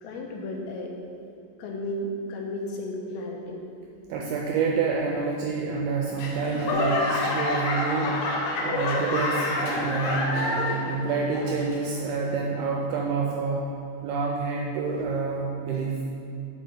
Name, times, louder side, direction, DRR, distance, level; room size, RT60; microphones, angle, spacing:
voice 1, 0.0-1.0 1.6-3.7 8.9-9.0 11.7-11.8 14.9-15.0, left 1 dB, 90° left, 1 dB, 3.2 m, -34 dB
voice 2, 4.1-8.2 8.6-10.5 10.9-13.8 14.0-16.1, right 4 dB, 85° right, -1 dB, 2.2 m, -28 dB
Laughter / Clapping / Crowd, 6.2-11.0 11.3-11.8 12.4-12.5, left 2 dB, 70° left, 2.3 m, -27 dB
6.9 x 4.7 x 5.7 m, 2.8 s
omnidirectional pair, 5.0 m